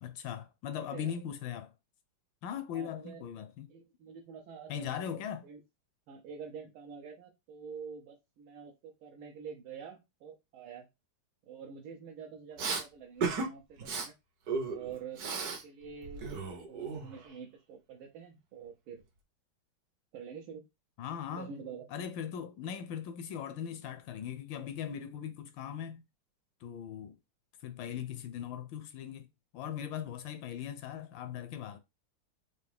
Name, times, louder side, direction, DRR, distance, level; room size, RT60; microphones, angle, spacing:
voice 1, 0.0-1.7 2.4-3.7 4.7-5.5 21.0-21.5 21.9-26.0 26.6-27.2 27.6-29.3 29.5-31.8, left 9 dB, 75° left, 1.2 m, -39 dB
voice 2, 0.9-1.2 2.7-3.2 3.7-5.1 5.4-5.6 6.1-10.9 11.5-14.1 14.6-19.0 20.1-20.7 21.3-21.9, right 6 dB, 80° right, 1.6 m, -47 dB
Respiratory sounds, 12.6-12.8 13.2-13.5 13.8-14.1 14.5-15.6 15.9-17.3, right 4 dB, 60° right, 1.2 m, -35 dB
4.9 x 2.6 x 3.3 m
omnidirectional pair, 2.3 m